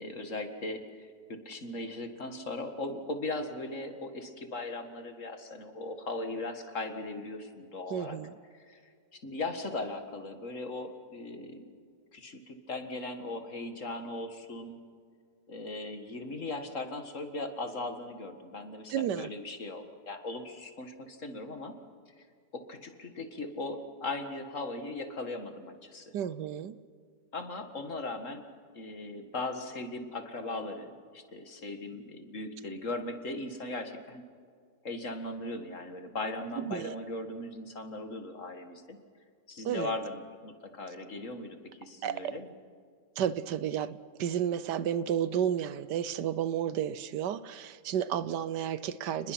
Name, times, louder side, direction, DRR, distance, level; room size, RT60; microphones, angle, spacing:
voice 1, 0.0-8.2 8.5-8.8 9.1-11.7 12.1-14.8 15.5-21.7 22.2-22.3 22.5-26.1 27.3-28.4 28.7-34.2 34.8-39.0 39.5-42.5, left 2 dB, 50° left, 7 dB, 2.1 m, -38 dB
voice 2, 7.9-8.3 18.9-19.3 26.1-26.7 36.6-36.9 39.6-39.9 42.0-42.3 43.2-49.3, right 9 dB, 80° right, 16 dB, 1.4 m, -32 dB
30.0 x 20.5 x 5.9 m, 2.1 s
omnidirectional pair, 1.8 m